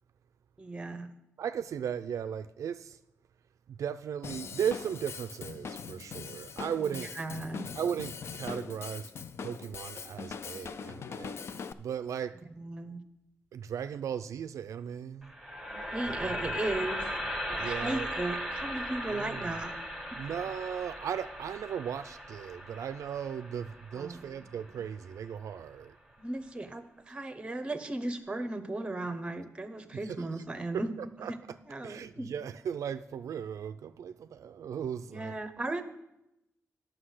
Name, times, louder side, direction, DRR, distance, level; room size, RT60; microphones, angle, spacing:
voice 1, 0.6-1.1 6.9-7.7 12.6-13.0 15.7-17.1 17.5-19.7 23.9-24.2 26.2-30.9 31.3-31.4 31.7-32.3 35.1-35.8, right 2 dB, 20° right, 0.8 m, -36 dB
voice 2, 1.4-3.0 3.7-7.1 7.7-9.1 9.4-12.4 13.5-15.3 16.1-16.4 17.6-18.1 19.1-19.5 20.2-25.9 30.1-30.3 30.7-31.3 31.8-35.3, right 8 dB, 80° right, 0.3 m, -37 dB
Drum kit / Drum, 4.2-11.7, left 6 dB, 55° left, 0.4 m, -41 dB
sound 1, 15.2-25.3, equal, ahead, 1.2 m, -38 dB
9.8 x 6.2 x 6.4 m
wide cardioid pair, 160°, 5 cm